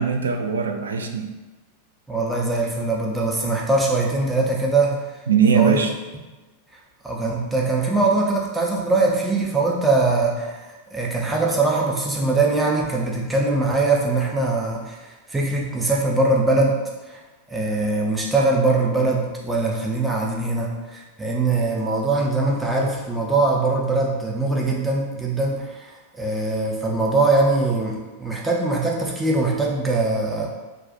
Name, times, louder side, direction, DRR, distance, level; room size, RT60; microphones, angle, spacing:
voice 1, 0.0-1.3 5.3-5.9, right 6 dB, 70° right, 5 dB, 0.3 m, -20 dB
voice 2, 2.1-5.0 5.5-5.8 7.0-10.6 10.9-16.8 17.1-17.2 17.5-25.9 26.2-30.5, right 3 dB, 10° right, -2 dB, 0.6 m, -22 dB
2.4 x 2.3 x 3.8 m, 1.2 s
figure-of-eight pair, 90°, 0 cm